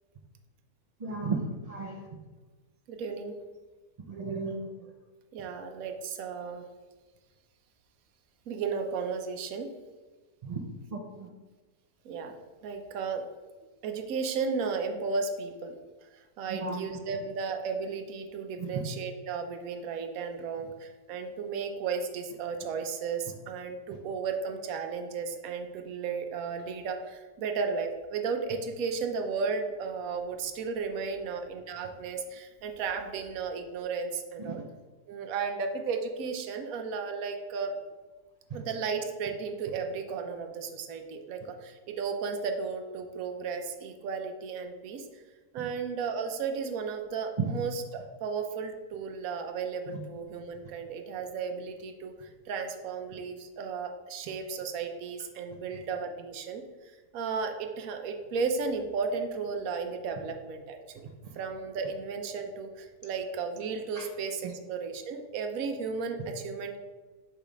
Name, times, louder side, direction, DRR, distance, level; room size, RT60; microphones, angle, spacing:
voice 1, 1.0-2.0 4.1-4.7 10.4-10.6 10.9-11.3 16.5-16.9 18.6-18.8 34.4-34.5 47.4-47.5 49.9-50.0 64.0-64.1, right 4 dB, 55° right, 1 dB, 0.4 m, -34 dB
voice 2, 2.9-3.3 5.3-6.6 8.5-9.7 12.0-12.3 12.6-13.2 13.8-15.8 16.1-34.6 35.1-37.7 38.5-45.1 45.5-56.6 57.1-61.1 61.3-66.8, right 5 dB, 75° right, 5 dB, 1.1 m, -34 dB
6.8 x 3.2 x 5.0 m, 1.2 s
omnidirectional pair, 1.5 m